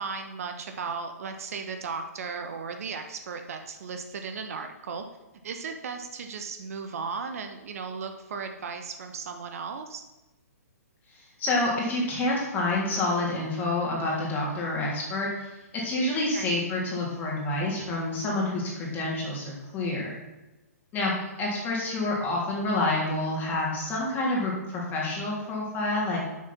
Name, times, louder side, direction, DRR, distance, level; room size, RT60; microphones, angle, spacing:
voice 1, 0.0-5.0 5.4-10.0 16.3-16.6 21.2-21.4, right 5 dB, 60° right, 6 dB, 1.0 m, -36 dB
voice 2, 11.4-15.5 15.8-20.1 20.9-21.1 21.4-26.2, left 2 dB, 20° left, -4 dB, 3.2 m, -28 dB
7.0 x 6.5 x 5.9 m, 1.1 s
hypercardioid pair, 130°, 9 cm